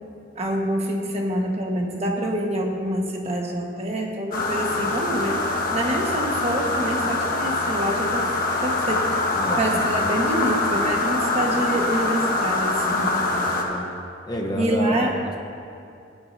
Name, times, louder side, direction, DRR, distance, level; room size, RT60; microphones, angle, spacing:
voice 1, 0.3-5.4 5.7-8.3 8.6-9.2 9.6-13.2 14.6-15.2, right 1 dB, 35° right, 0 dB, 1.3 m, -26 dB
sound 1, 4.3-13.6, left 2 dB, 50° left, 1.3 m, -24 dB
voice 2, 9.3-10.2 13.3-13.9 14.3-15.4, equal, 20° left, 2 dB, 0.9 m, -30 dB
17.0 x 9.9 x 2.7 m, 2.5 s
head